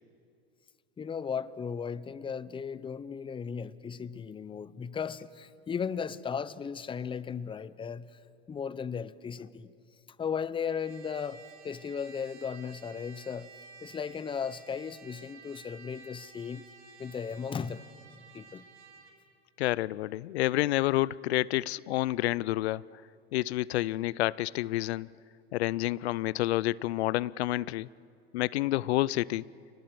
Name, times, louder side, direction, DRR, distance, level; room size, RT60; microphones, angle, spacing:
voice 1, 1.0-8.2 8.5-9.7 10.2-13.5 13.8-16.6 17.0-17.8 18.3-18.6, left 6 dB, 15° left, 0.7 m, -36 dB
Trumpet, 10.6-19.2, right 5 dB, 90° right, 3.9 m, -53 dB
voice 2, 19.6-22.8 23.3-25.1 25.5-27.9 28.3-29.4, left 16 dB, 85° left, 0.5 m, -29 dB
28.5 x 20.0 x 7.7 m
hypercardioid pair, 105°, 31 cm